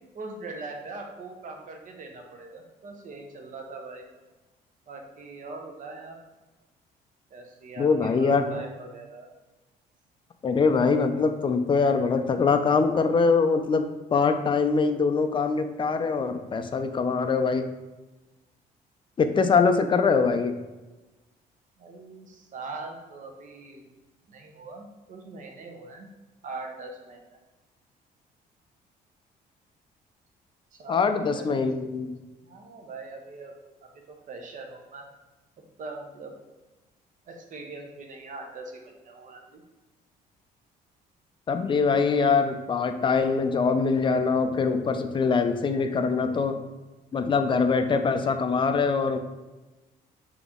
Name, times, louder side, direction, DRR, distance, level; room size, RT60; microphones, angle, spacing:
voice 1, 0.1-4.0 4.9-6.2 7.3-9.3 21.8-23.9 24.3-26.1 26.4-27.4 30.7-31.6 32.4-33.5 33.8-35.1 35.8-36.3 37.3-39.6, right 3 dB, 50° right, 2 dB, 0.8 m, -41 dB
voice 2, 7.8-8.5 10.4-17.6 19.2-20.5 30.9-32.1 41.5-46.6 47.1-49.2, left 5 dB, 30° left, 8 dB, 0.4 m, -23 dB
3.9 x 2.9 x 3.6 m, 1.1 s
cardioid pair, 100°, 16 cm